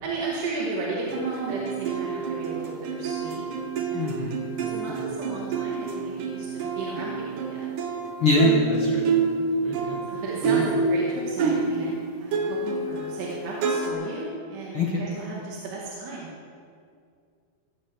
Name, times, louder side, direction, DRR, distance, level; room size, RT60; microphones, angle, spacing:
voice 1, 0.0-3.4 3.8-4.2 4.6-7.8 9.6-16.3, right 3 dB, 85° right, -5 dB, 4.1 m, -34 dB
sound 1, 1.1-12.0 12.3-13.9, right 4 dB, 65° right, 2.4 m, -27 dB
voice 2, 3.9-4.4 4.9-5.0 8.2-9.0 9.6-10.6 14.7-15.0, left 3 dB, 55° left, -3 dB, 1.5 m, -25 dB
18.0 x 7.5 x 7.8 m, 2.2 s
omnidirectional pair, 4.6 m